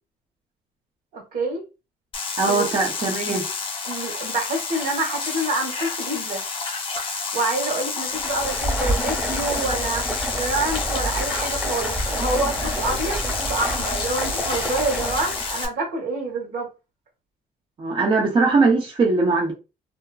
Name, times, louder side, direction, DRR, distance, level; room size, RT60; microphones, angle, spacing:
voice 1, 1.1-1.6 2.4-2.7 3.8-6.4 7.0-16.7, right 2 dB, 60° right, 1.2 m, -27 dB
sound 1, 2.1-15.7, left 4 dB, 30° left, 0.6 m, -29 dB
voice 2, 2.4-3.4 17.8-19.5, right 3 dB, 30° right, 0.6 m, -20 dB
Stream, 8.1-15.6, equal, 10° right, 1.0 m, -28 dB
2.8 x 2.3 x 2.3 m
cardioid pair, 110°, 17 cm